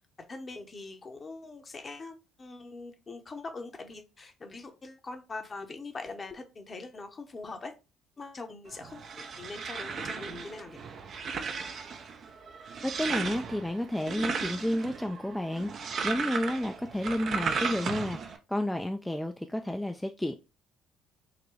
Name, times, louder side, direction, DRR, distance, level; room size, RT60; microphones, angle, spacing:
voice 1, 0.3-7.7 8.2-9.1 9.4-10.8, left 3 dB, 35° left, 6 dB, 0.9 m, -42 dB
sound 1, 8.7-18.4, right 5 dB, 50° right, 0.6 m, -36 dB
voice 2, 12.8-20.3, left 1 dB, 5° left, 5 dB, 0.4 m, -31 dB
3.8 x 2.2 x 3.2 m, 0.29 s
hypercardioid pair, 55°, 0 cm